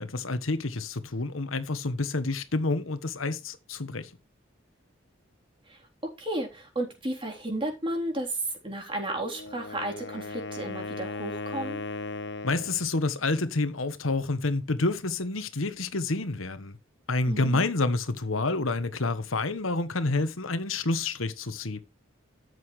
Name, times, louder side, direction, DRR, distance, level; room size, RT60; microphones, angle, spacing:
voice 1, 0.0-4.1 12.4-16.8 17.1-21.8, left 2 dB, 90° left, 1.3 m, -28 dB
voice 2, 6.2-11.8 17.3-17.7, right 1 dB, 25° right, 3.8 m, -33 dB
Wind instrument woodwind instrument, 9.3-12.9, left 3 dB, 60° left, 1.1 m, -37 dB
12.5 x 8.2 x 3.3 m
head